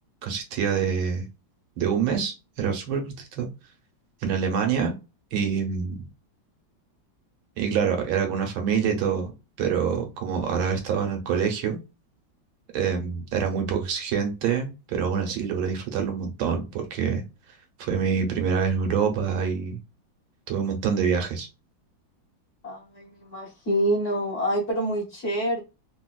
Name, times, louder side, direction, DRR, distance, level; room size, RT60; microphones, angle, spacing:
voice 1, 0.2-1.2 1.8-3.5 4.2-4.9 5.3-6.0 7.6-9.3 9.6-11.8 12.7-17.2 17.8-19.8 20.5-21.5, right 6 dB, 85° right, 1.7 m, -26 dB
voice 2, 22.6-25.6, right 1 dB, 45° left, 1.3 m, -27 dB
3.9 x 2.4 x 2.2 m
omnidirectional pair, 2.2 m